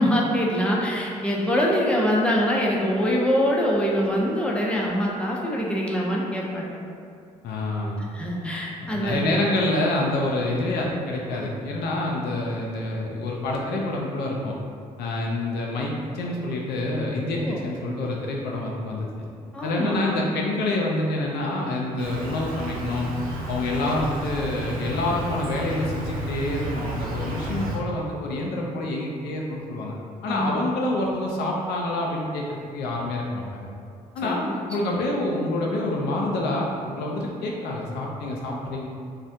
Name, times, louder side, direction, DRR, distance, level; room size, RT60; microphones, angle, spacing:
voice 1, 0.0-6.8 8.1-9.3 17.4-17.6 19.5-20.1 30.3-30.7 34.2-35.0, equal, 5° left, -3 dB, 0.6 m, -24 dB
voice 2, 7.4-8.0 8.9-14.6 15.0-19.1 19.6-23.1 23.5-29.9 30.2-33.7 34.1-38.9, left 2 dB, 65° left, -1 dB, 0.4 m, -27 dB
Insect, 22.0-27.8, right 1 dB, 50° right, 0.6 m, -32 dB
3.2 x 2.1 x 2.6 m, 2.4 s
hypercardioid pair, 45°, 18 cm